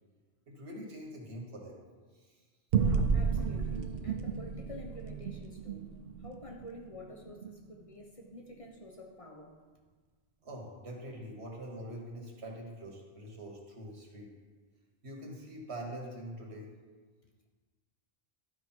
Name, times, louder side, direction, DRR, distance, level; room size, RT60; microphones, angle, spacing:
voice 1, 0.5-1.8 2.2-2.4 10.4-14.3 15.0-16.7, right 1 dB, 90° right, 0 dB, 1.8 m, -44 dB
sound 1, 2.7-7.5, right 5 dB, 65° right, 0.9 m, -32 dB
voice 2, 3.1-5.9 6.2-9.5, left 1 dB, 35° left, 0 dB, 0.9 m, -49 dB
11.5 x 4.7 x 4.4 m, 1.4 s
omnidirectional pair, 1.1 m